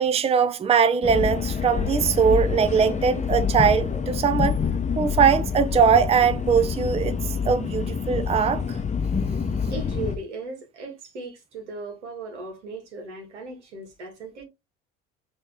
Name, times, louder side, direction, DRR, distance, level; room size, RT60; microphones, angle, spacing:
voice 1, 0.0-4.6 5.0-7.2 7.4-8.8, right 6 dB, 20° right, 0.5 m, -21 dB
sound 1, 1.0-10.1, left 6 dB, 20° left, 0.7 m, -27 dB
voice 2, 9.7-14.4, right 3 dB, 85° right, 1.6 m, -37 dB
4.3 x 3.0 x 3.5 m
hypercardioid pair, 60°, 34 cm